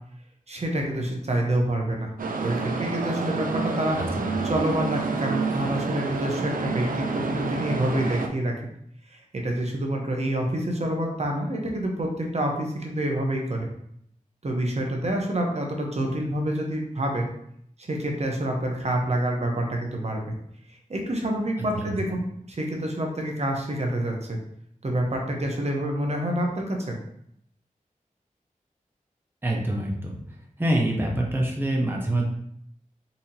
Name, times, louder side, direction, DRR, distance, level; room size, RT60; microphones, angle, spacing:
voice 1, 0.5-2.1 2.4-4.0 4.4-8.5 9.1-13.7 14.4-17.3 17.8-20.3 20.9-22.2 22.6-24.4 24.8-27.0, right 1 dB, 50° right, 1 dB, 0.8 m, -27 dB
sound 1, 2.2-8.3, right 4 dB, 80° right, 0.4 m, -29 dB
voice 2, 29.4-30.2 30.6-32.2, right 1 dB, 15° right, -1 dB, 0.8 m, -25 dB
4.1 x 2.8 x 2.7 m, 0.71 s
wide cardioid pair, 55°, 14 cm